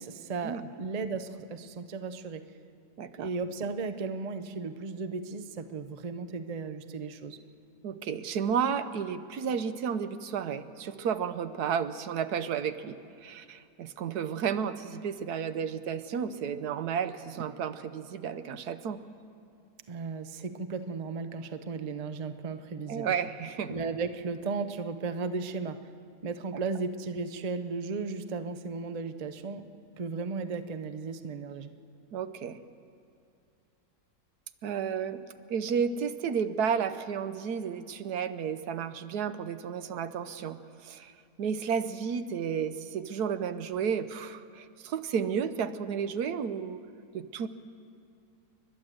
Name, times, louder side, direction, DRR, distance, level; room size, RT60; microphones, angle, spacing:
voice 1, 0.0-2.4 3.2-7.4 19.9-23.1 23.7-25.8 26.2-29.7 30.0-31.7, right 4 dB, 40° right, 10 dB, 0.6 m, -35 dB
voice 2, 3.0-3.3 7.8-13.0 13.2-19.0 22.9-23.8 32.1-32.6 34.6-41.1 41.4-46.8 47.1-47.5, right 7 dB, 80° right, 11 dB, 1.3 m, -32 dB
30.0 x 11.5 x 7.7 m, 2.5 s
omnidirectional pair, 1.7 m